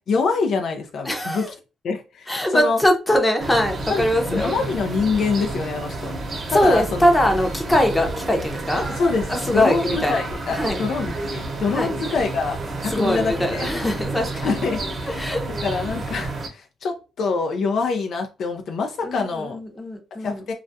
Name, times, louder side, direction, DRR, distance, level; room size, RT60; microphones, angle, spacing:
voice 1, 0.1-1.4 1.8-2.8 3.9-4.0 4.3-6.1 6.5-7.1 8.7-12.6 12.8-13.8 14.4-15.2 15.6-19.6 20.2-20.5, left 4 dB, 65° left, 0.4 m, -25 dB
voice 2, 1.0-1.5 2.3-4.5 6.5-8.9 9.3-10.1 10.5-10.8 11.7-11.9 12.9-14.5 15.1-15.4 19.0-20.4, left 1 dB, 15° left, 0.7 m, -22 dB
sound 1, 3.4-16.5, right 2 dB, 45° right, 0.8 m, -30 dB
2.3 x 2.2 x 2.6 m
cardioid pair, 90°, 0 cm